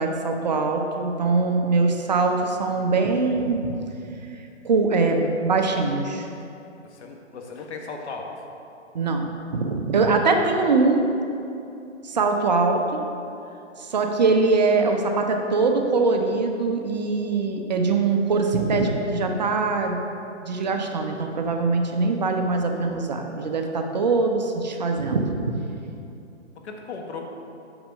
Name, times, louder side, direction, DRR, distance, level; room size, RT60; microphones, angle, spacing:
voice 1, 0.0-3.7 4.6-6.3 8.9-11.1 12.0-13.0 13.8-20.0 20.4-25.8, right 3 dB, 35° right, 3 dB, 0.5 m, -22 dB
voice 2, 6.8-8.4 26.6-27.2, left 4 dB, 65° left, 2 dB, 1.2 m, -36 dB
5.9 x 5.5 x 5.1 m, 2.7 s
hypercardioid pair, 155°, 37 cm